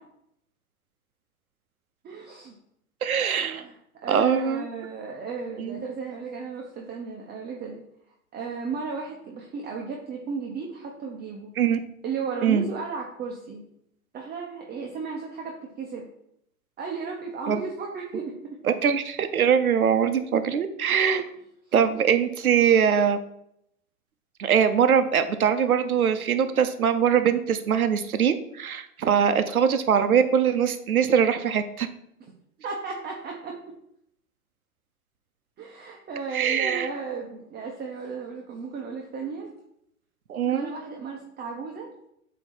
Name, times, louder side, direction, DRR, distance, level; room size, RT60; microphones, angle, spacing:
voice 1, 2.0-2.5 3.6-7.8 8.3-11.5 12.0-13.6 14.1-16.1 16.8-18.6 32.6-33.6 35.6-39.5 40.5-41.9, right 5 dB, 25° right, 0 dB, 0.9 m, -34 dB
voice 2, 3.0-3.6 4.1-4.6 5.6-5.8 11.6-11.8 12.4-12.6 17.5-17.6 18.8-21.2 21.7-23.2 24.4-31.9 36.3-36.9 40.3-40.7, right 7 dB, 90° right, 10 dB, 0.7 m, -22 dB
7.8 x 3.0 x 4.4 m, 0.76 s
hypercardioid pair, 100°, 42 cm